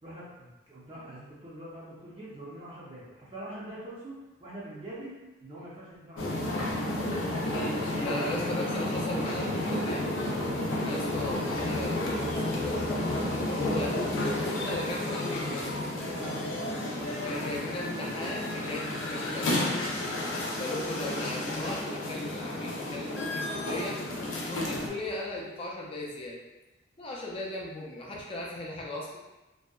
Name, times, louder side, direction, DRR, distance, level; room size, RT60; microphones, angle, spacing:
voice 1, 0.0-5.1 5.4-6.6 8.3-8.9 10.7-11.1 13.0-13.8 16.0-17.7, right 1 dB, 25° right, -8 dB, 0.5 m, -44 dB
sound 1, 6.2-24.9, left 1 dB, 85° left, 0.5 m, -31 dB
voice 2, 8.0-10.1 10.7-12.8 13.3-15.9 17.2-20.1 20.6-24.0 24.5-26.4 27.0-29.2, left 1 dB, 30° left, -3 dB, 0.4 m, -37 dB
2.6 x 2.1 x 2.3 m, 1.1 s
head